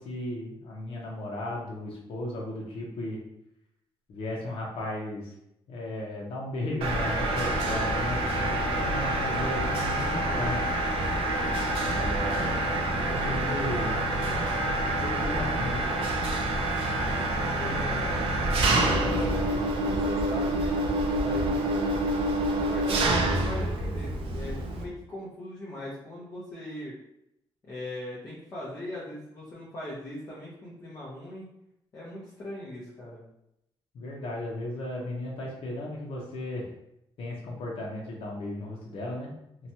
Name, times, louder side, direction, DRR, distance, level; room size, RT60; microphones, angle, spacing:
voice 1, 0.0-3.2 4.1-5.3 5.7-10.6 11.8-12.7 13.0-14.1 15.0-15.9 33.9-36.7 37.2-39.3, left 1 dB, 75° left, -2 dB, 0.6 m, -35 dB
Mechanisms, 6.8-24.8, right 1 dB, 75° right, 0.4 m, -27 dB
voice 2, 17.6-22.0 22.6-26.9 27.7-31.5 31.9-33.2, left 1 dB, 35° left, -8 dB, 0.6 m, -39 dB
2.8 x 2.2 x 2.7 m, 0.81 s
wide cardioid pair, 170°, 10 cm